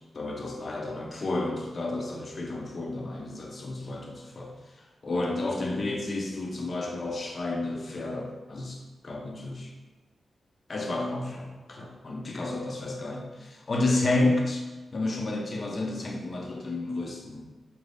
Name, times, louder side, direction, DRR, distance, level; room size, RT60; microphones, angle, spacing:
voice 1, 0.1-4.5 5.0-9.7 10.7-14.6 14.9-17.5, left 2 dB, 45° left, 0 dB, 0.6 m, -31 dB
4.3 x 3.3 x 2.6 m, 1.2 s
wide cardioid pair, 100°, 0 cm